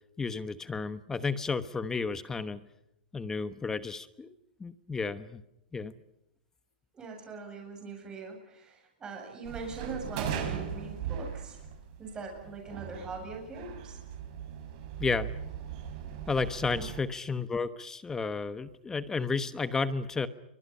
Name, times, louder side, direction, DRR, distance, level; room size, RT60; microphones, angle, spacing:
voice 1, 0.2-2.6 3.1-4.3 4.6-5.4 5.7-5.9 15.0-15.3 16.3-20.3, left 4 dB, 10° left, 14 dB, 1.1 m, -32 dB
voice 2, 6.9-11.6 12.0-14.0 16.7-16.9, right 4 dB, 15° right, 2 dB, 7.7 m, -42 dB
sound 1, 9.4-17.0, right 8 dB, 45° right, 6.2 m, -39 dB
29.0 x 25.0 x 5.6 m, 0.82 s
hypercardioid pair, 155°, 5 cm